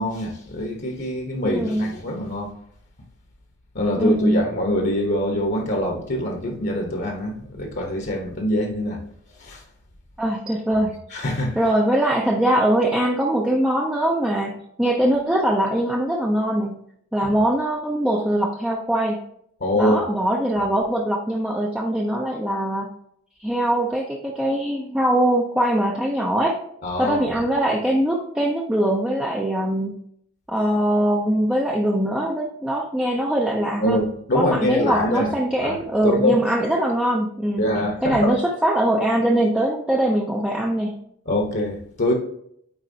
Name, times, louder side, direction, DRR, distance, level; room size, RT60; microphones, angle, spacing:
voice 1, 0.0-2.5 3.7-9.0 9.4-9.6 11.1-11.6 17.2-17.3 19.6-20.0 26.8-27.2 33.8-35.3 35.6-36.4 37.6-38.3 41.3-42.1, left 1 dB, 50° left, 2 dB, 1.2 m, -24 dB
voice 2, 1.4-1.9 4.0-4.4 10.2-11.0 11.6-16.8 17.1-19.2 19.8-22.9 23.4-26.6 27.0-30.0 30.5-34.0 34.3-37.6 38.0-41.0, right 1 dB, 5° right, -2 dB, 0.6 m, -22 dB
9.0 x 4.3 x 2.8 m, 0.69 s
head